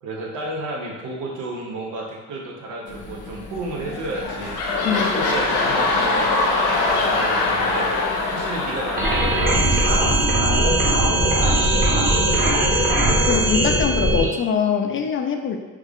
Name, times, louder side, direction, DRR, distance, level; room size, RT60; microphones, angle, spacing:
voice 1, 0.0-4.6 4.9-6.3 6.9-7.9 8.3-10.2 10.6-12.6, right 2 dB, 85° right, -1 dB, 0.8 m, -32 dB
sound 1, 2.9-10.2, left 3 dB, 25° left, 0.8 m, -38 dB
sound 2, 3.8-10.4 10.9-11.0, left 3 dB, 90° left, 0.6 m, -23 dB
sound 3, 9.0-14.3, right 1 dB, 30° right, 1.1 m, -19 dB
voice 2, 13.3-15.6, left 7 dB, 45° left, 4 dB, 0.4 m, -23 dB
3.2 x 2.3 x 3.5 m, 1.2 s
cardioid pair, 90°, 30 cm